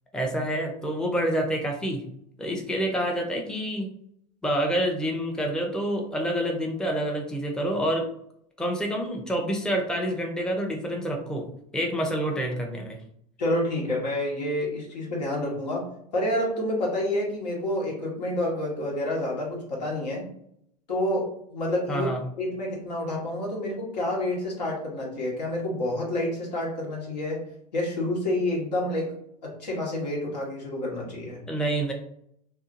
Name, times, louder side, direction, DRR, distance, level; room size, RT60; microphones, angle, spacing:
voice 1, 0.1-2.0 2.4-3.9 4.4-8.0 8.6-11.5 11.7-13.0 21.9-22.2 31.5-31.9, right 1 dB, 5° left, 1 dB, 0.5 m, -27 dB
voice 2, 13.4-20.3 20.9-22.1 22.4-27.4 27.7-29.1 29.4-31.4, left 1 dB, 80° left, -3 dB, 1.2 m, -28 dB
2.7 x 2.4 x 2.5 m, 0.71 s
hypercardioid pair, 85°, 21 cm